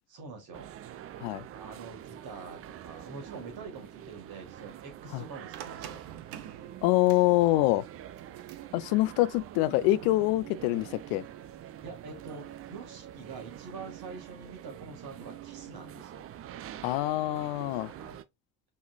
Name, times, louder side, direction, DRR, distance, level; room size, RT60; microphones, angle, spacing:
voice 1, 0.1-0.7 1.5-6.0 11.8-16.3 18.0-18.2, right 4 dB, 50° right, 2.2 m, -45 dB
sound 1, 0.5-18.2, right 11 dB, 30° right, 0.4 m, -46 dB
sound 2, 5.5-13.6, right 10 dB, 70° right, 0.7 m, -50 dB
voice 2, 6.8-7.8 8.7-11.2 16.8-17.9, left 17 dB, 60° left, 0.5 m, -25 dB
5.2 x 3.5 x 2.5 m
figure-of-eight pair, 50°, 46 cm